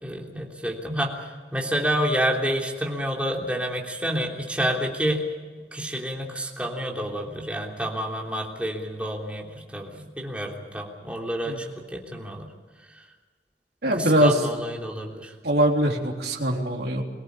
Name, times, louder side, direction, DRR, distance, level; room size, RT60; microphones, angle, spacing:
voice 1, 0.0-5.2 5.7-11.6 11.9-12.5 13.9-15.3, equal, 5° right, -1 dB, 3.4 m, -29 dB
voice 2, 13.8-14.4 15.4-17.0, right 1 dB, 65° right, 0 dB, 3.6 m, -22 dB
24.0 x 17.5 x 8.4 m, 1.4 s
head